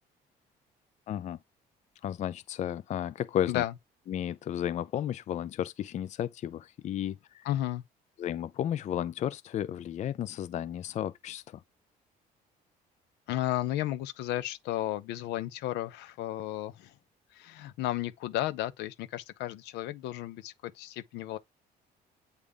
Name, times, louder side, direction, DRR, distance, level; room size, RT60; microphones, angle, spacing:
voice 1, 1.1-1.4 2.0-3.6 4.1-7.5 8.2-11.6, left 10 dB, 45° left, 0.4 m, -33 dB
voice 2, 7.4-7.8 13.3-16.9 17.3-21.4, left 14 dB, 85° left, 0.8 m, -33 dB
8.3 x 3.5 x 3.6 m
cardioid pair, 110°, 17 cm